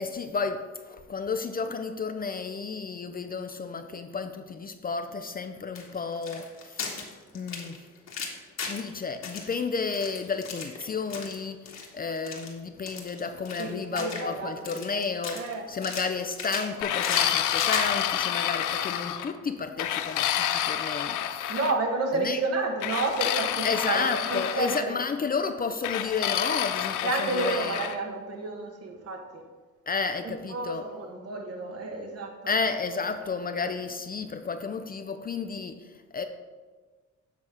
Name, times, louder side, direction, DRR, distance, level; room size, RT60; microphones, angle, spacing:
voice 1, 0.0-6.9 7.3-7.8 8.6-21.6 22.1-22.4 23.6-27.8 29.9-30.9 32.5-36.2, left 4 dB, 30° left, 7 dB, 0.5 m, -32 dB
sound 1, 5.7-8.9 9.2-11.4 11.7-11.9 12.1-12.5 12.9-14.4 14.7-15.5 15.8-17.9, left 5 dB, 60° left, 1.4 m, -36 dB
voice 2, 13.6-14.8 15.3-15.6 21.5-25.0 27.0-29.4 30.2-32.3, right 3 dB, 55° right, 3 dB, 1.3 m, -31 dB
sound 2, 16.8-19.3 19.8-21.7 22.8-24.8 25.8-28.0, left 11 dB, 85° left, 0.5 m, -28 dB
7.7 x 3.5 x 6.0 m, 1.4 s
cardioid pair, 90°, 30 cm